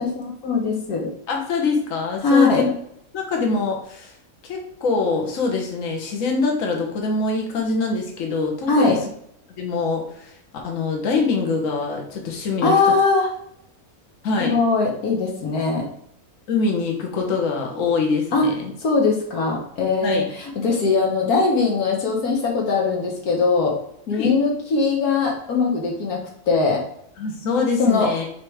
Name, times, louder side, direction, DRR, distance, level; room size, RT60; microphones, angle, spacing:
voice 1, 0.0-1.1 2.2-2.7 8.7-9.0 12.6-13.3 14.4-15.9 18.3-18.5 18.8-23.8 24.1-26.8 27.8-28.1, left 4 dB, 75° left, 0 dB, 1.6 m, -20 dB
voice 2, 1.3-2.7 3.1-4.1 4.4-9.0 9.5-10.3 10.6-12.8 14.2-14.6 16.5-18.7 20.0-20.3 24.1-24.3 27.2-28.2, left 4 dB, 60° left, 1 dB, 1.5 m, -24 dB
5.7 x 3.6 x 4.9 m, 0.71 s
omnidirectional pair, 1.6 m